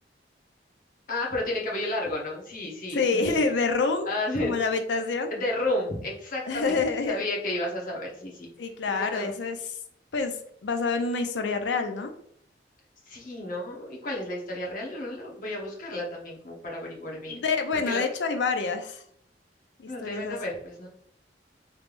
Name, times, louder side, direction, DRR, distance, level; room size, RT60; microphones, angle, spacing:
voice 1, 1.1-3.6 4.0-4.6 5.3-6.8 7.1-8.5 8.9-9.3 13.1-17.4 17.7-18.0 19.9-20.9, left 1 dB, 50° left, -2 dB, 1.0 m, -32 dB
voice 2, 2.9-4.1 4.4-5.3 6.5-7.2 8.6-9.6 10.1-10.4 10.6-12.1 17.3-19.0 19.8-20.4, left 4 dB, 80° left, 6 dB, 0.5 m, -27 dB
3.4 x 3.2 x 2.5 m, 0.66 s
head